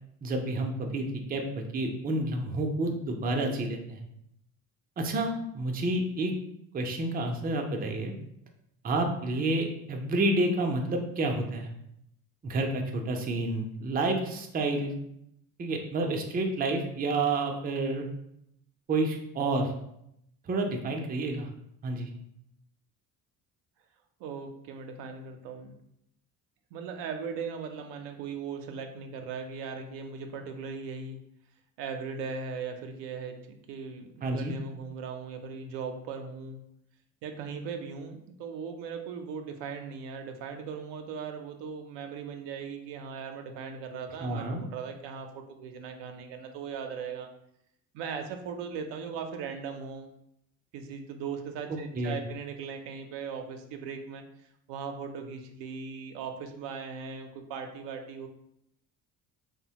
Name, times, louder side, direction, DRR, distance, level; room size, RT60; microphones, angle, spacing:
voice 1, 0.2-4.0 5.0-6.3 6.7-8.1 8.8-11.7 12.4-14.9 15.6-18.1 18.9-19.7 20.4-21.5 21.8-22.1 34.2-34.5 44.2-44.6 51.7-52.2, right 2 dB, 20° right, 3 dB, 0.4 m, -29 dB
voice 2, 24.2-25.8 26.7-31.2 31.8-36.6 37.2-47.3 47.9-50.1 50.7-54.2 54.7-58.3, right 6 dB, 70° right, 5 dB, 0.5 m, -38 dB
2.9 x 2.1 x 2.8 m, 0.77 s
supercardioid pair, 65°, 44 cm